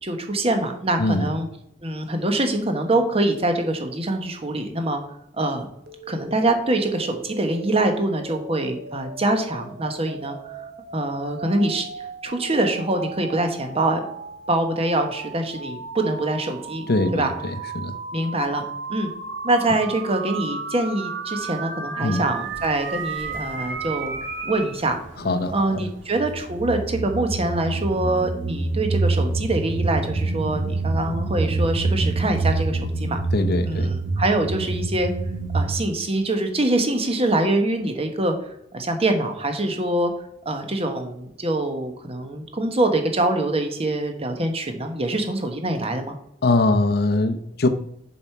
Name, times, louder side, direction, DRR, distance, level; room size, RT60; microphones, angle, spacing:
voice 1, 0.0-1.5 1.8-5.0 5.4-5.7 6.1-10.5 10.9-11.8 12.2-14.0 14.5-16.8 17.1-17.3 18.1-19.1 19.4-24.1 24.4-25.0 25.5-33.2 33.6-35.1 35.5-38.3 38.7-40.1 40.4-46.1, right 2 dB, 30° right, 1.1 m, -24 dB
voice 2, 1.0-1.3 16.9-18.0 22.0-22.2 25.2-25.8 33.3-33.9 46.4-47.7, left 2 dB, 55° left, 0.7 m, -22 dB
sound 1, 5.9-24.7, right 4 dB, 60° right, 1.1 m, -35 dB
sound 2, 22.5-22.7 23.2-24.3 24.7-25.6 26.1-35.8, right 3 dB, 85° right, 1.5 m, -26 dB
7.1 x 4.7 x 5.7 m
head